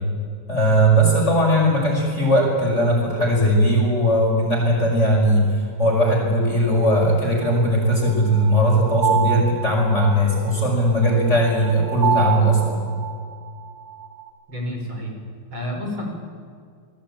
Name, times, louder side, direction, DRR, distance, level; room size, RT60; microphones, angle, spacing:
voice 1, 0.5-12.9, equal, 30° left, -1 dB, 6.3 m, -19 dB
sound 1, 7.4-14.3, right 9 dB, 90° right, 3.2 m, -28 dB
voice 2, 14.5-15.1 15.5-16.0, left 1 dB, 65° right, 2 dB, 6.2 m, -29 dB
27.5 x 21.5 x 8.9 m, 2.1 s
omnidirectional pair, 2.4 m